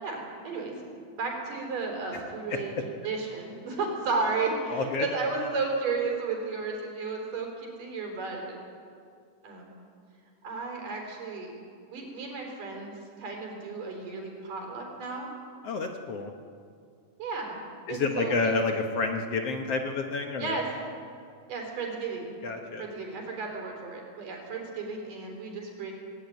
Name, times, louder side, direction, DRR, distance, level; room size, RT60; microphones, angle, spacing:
voice 1, 0.0-0.8 1.2-2.7 3.0-8.6 9.4-9.7 10.4-11.5 11.9-15.3 17.2-17.6 17.9-18.6 20.4-20.6 21.5-22.3 22.8-25.9, right 4 dB, 75° right, 1 dB, 5.7 m, -33 dB
voice 2, 4.7-5.1 15.6-16.3 17.9-20.6 22.4-22.9, left 4 dB, 60° left, 3 dB, 1.9 m, -29 dB
19.0 x 18.5 x 9.3 m, 2.3 s
omnidirectional pair, 3.8 m